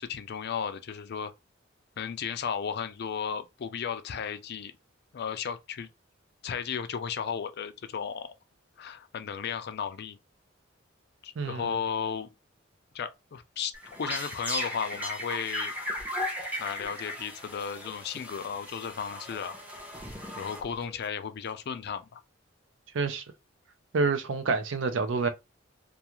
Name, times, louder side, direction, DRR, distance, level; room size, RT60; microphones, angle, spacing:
voice 1, 0.0-1.3 2.0-4.7 5.1-5.9 6.4-8.3 8.8-10.2 11.2-12.3 12.9-15.7 16.6-19.6 20.4-22.2, left 7 dB, 55° left, 0.4 m, -34 dB
sound 1, 13.7-21.0, left 1 dB, 10° right, 0.6 m, -37 dB
voice 2, 23.9-25.3, right 4 dB, 70° right, 0.5 m, -27 dB
2.4 x 2.3 x 2.9 m
head